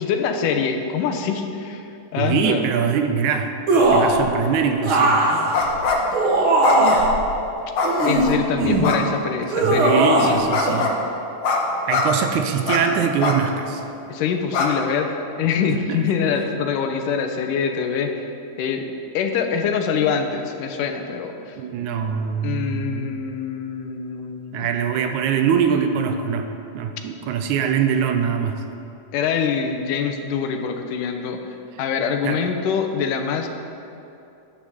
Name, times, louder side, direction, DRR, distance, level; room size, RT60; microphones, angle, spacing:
voice 1, 0.0-2.6 8.1-10.5 14.1-18.3 18.6-18.9 19.1-21.6 22.4-24.7 29.1-33.5, left 6 dB, 85° left, 5 dB, 2.4 m, -24 dB
voice 2, 2.2-3.5 3.9-5.2 9.6-10.9 11.9-13.8 15.9-16.1 21.6-23.1 24.5-28.6 32.2-32.4, right 7 dB, 80° right, 6 dB, 2.0 m, -23 dB
sound 1, 3.7-4.2 4.8-7.1 7.8-8.9 9.5-10.4 10.6-10.8, right 2 dB, 55° right, 1.7 m, -18 dB
sound 2, 5.5-6.1 6.6-7.2 7.7-8.4 8.8-9.0 10.5-11.0 11.4-11.6 11.9-12.0 12.7-12.8 13.2-13.4 13.9-14.0 14.5-14.7, left 4 dB, 65° left, 1.3 m, -22 dB
13.5 x 10.5 x 3.6 m, 2.7 s
omnidirectional pair, 3.6 m